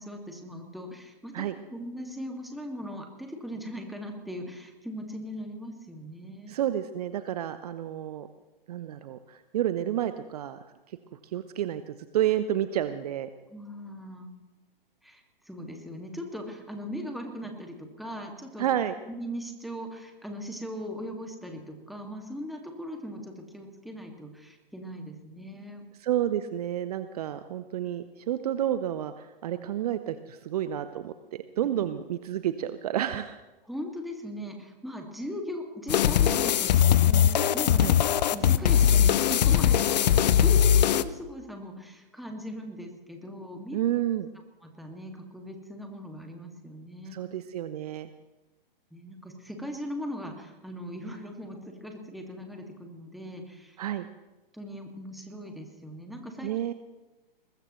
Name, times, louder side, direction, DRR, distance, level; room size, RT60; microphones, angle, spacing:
voice 1, 0.0-1.4 1.7-6.6 13.5-14.3 15.0-18.7 19.1-25.8 33.7-43.8 44.6-47.2 48.9-53.8 54.5-56.5, equal, ahead, 2 dB, 2.0 m, -39 dB
voice 2, 6.5-8.3 8.7-11.0 11.3-13.3 18.6-18.9 26.0-33.4 37.8-37.9 43.7-44.3 47.1-48.1 53.8-54.1 56.4-56.7, right 11 dB, 40° right, 12 dB, 0.7 m, -30 dB
sound 1, 35.9-41.0, left 9 dB, 45° left, 0.7 m, -21 dB
22.0 x 20.5 x 3.1 m, 1.1 s
figure-of-eight pair, 120°, 29 cm